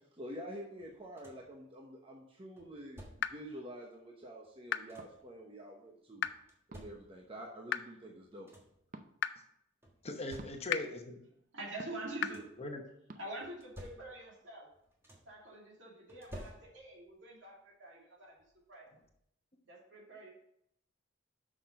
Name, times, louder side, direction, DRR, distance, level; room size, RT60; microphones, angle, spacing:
voice 1, 0.2-6.3 6.7-8.5, equal, 30° right, -1 dB, 1.0 m, -48 dB
sound 1, 0.8-1.6 2.6-3.5 4.4-5.3 6.2-7.4 8.0-8.1 8.3-8.9 9.8-11.0 11.9-12.7 13.4-14.4 14.7-15.5 16.1-17.1 18.4-18.5 19.0-19.2, equal, 15° right, 1.4 m, -54 dB
sound 2, 3.2-3.3 4.7-4.8 6.2-6.3 7.7-7.8 9.2-9.3 10.7-10.8 12.2-12.3, left 10 dB, 60° left, 0.4 m, -32 dB
sound 3, 5.0-5.1 6.7-7.0 8.9-9.1 10.4-10.6 11.8-12.1 13.1-13.2, right 2 dB, 45° right, 0.6 m, -50 dB
voice 2, 10.0-11.2 12.6-12.8, left 2 dB, 30° left, 4 dB, 1.0 m, -39 dB
voice 3, 11.5-12.5 13.1-14.7 15.3-18.4 18.7-18.9 19.7-20.3, right 2 dB, 65° right, -2 dB, 2.6 m, -46 dB
6.6 x 6.1 x 5.2 m, 0.74 s
head